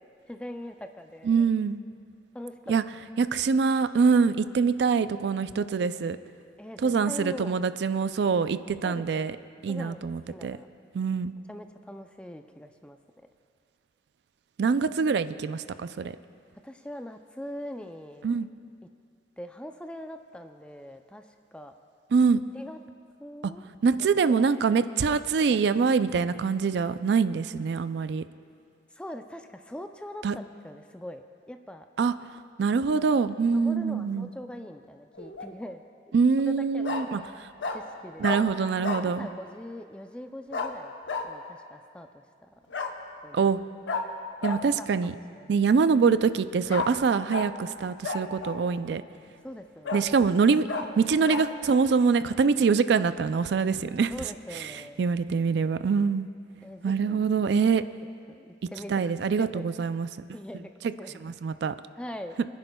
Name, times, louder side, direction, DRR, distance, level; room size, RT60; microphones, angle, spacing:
voice 1, 0.3-1.5 2.3-2.7 4.2-4.3 6.6-7.6 8.8-10.0 10.3-10.7 11.5-13.0 16.6-18.3 19.4-21.7 22.5-22.8 23.2-23.7 24.0-24.8 25.1-25.2 25.5-25.7 28.9-31.9 33.5-35.8 36.7-37.1 37.7-38.4 39.0-40.9 41.2-42.5 43.2-43.5 44.8-45.6 49.4-50.0 54.1-55.1 56.6-57.3 58.3-59.1 59.4-59.6 60.3-60.7 61.0-61.2 62.0-62.4, left 1 dB, 5° left, 6 dB, 0.4 m, -42 dB
voice 2, 1.2-1.8 2.7-2.8 3.2-6.2 6.8-9.3 9.6-10.6 10.9-11.3 14.6-16.1 18.2-18.5 22.1-22.4 23.8-28.2 30.2-30.4 32.0-32.1 32.6-34.3 36.1-37.2 38.2-39.3 43.3-43.6 44.4-45.1 45.5-49.0 49.9-50.7 51.0-54.1 54.5-54.7 55.0-56.3 56.8-57.8 58.9-60.1 61.2-61.7, right 5 dB, 65° right, 13 dB, 0.3 m, -24 dB
Bark, 35.1-35.5 36.8-37.0 37.6-37.8 38.2-38.4 38.8-39.1 40.5-40.7 41.1-41.3 42.7-42.9 43.9-44.0 44.4-44.6 46.7-46.9 47.3-47.5 48.0-48.7 49.2-49.3 49.8-50.0 50.7-50.8 51.3-51.4, left 4 dB, 75° left, 0.8 m, -31 dB
29.5 x 10.5 x 2.3 m, 2.3 s
head